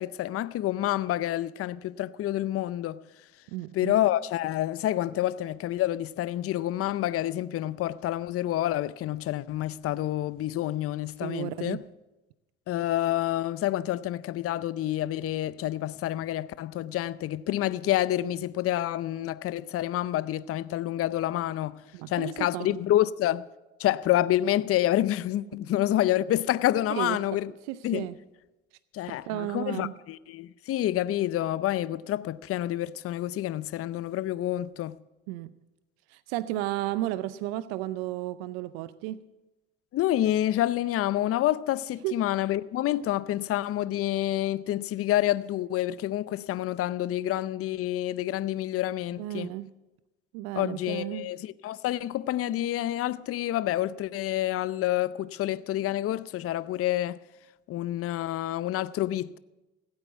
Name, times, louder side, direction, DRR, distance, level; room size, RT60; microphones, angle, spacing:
voice 1, 0.0-3.0 3.7-11.8 12.7-21.8 22.1-23.5 23.8-27.5 27.8-28.1 28.9-34.9 39.9-49.5 50.6-57.2 57.7-59.4, left 13 dB, 50° left, 0.5 m, -28 dB
voice 2, 3.5-3.9 11.2-11.8 21.9-22.8 26.9-27.2 27.7-28.2 29.1-29.9 35.3-35.5 36.1-39.2 42.0-42.1 49.2-49.7 50.3-51.3, right 15 dB, 85° right, 0.5 m, -33 dB
16.0 x 8.8 x 6.9 m
supercardioid pair, 65°, 29 cm